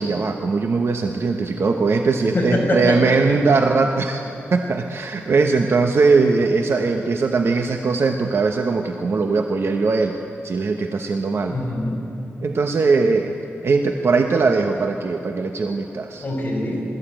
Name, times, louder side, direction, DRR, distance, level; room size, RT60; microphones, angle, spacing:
voice 1, 0.0-4.2 4.5-10.2 10.4-11.6 12.4-13.3 13.6-16.3, right 4 dB, 60° right, 4 dB, 1.1 m, -20 dB
voice 2, 2.3-3.2 11.5-12.0 16.2-16.8, left 1 dB, 40° left, -2 dB, 5.7 m, -23 dB
21.5 x 14.0 x 9.0 m, 3.0 s
wide cardioid pair, 110°, 5 cm